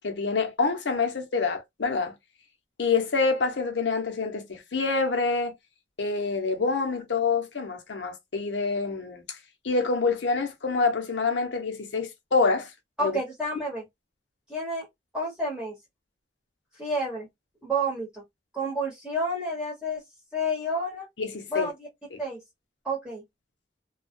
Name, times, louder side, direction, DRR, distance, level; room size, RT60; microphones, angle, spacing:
voice 1, 0.0-2.1 2.8-5.5 6.0-9.4 9.6-12.7 13.0-13.2 21.2-21.7 22.1-22.2, left 4 dB, 90° left, 0.7 m, -26 dB
voice 2, 13.0-13.8 14.5-14.9 15.1-15.7 16.8-17.3 17.6-18.2 18.5-20.0 20.3-21.1 21.5-21.9 22.2-22.4 22.8-23.2, equal, 5° right, 1.0 m, -29 dB
2.2 x 2.2 x 2.5 m
head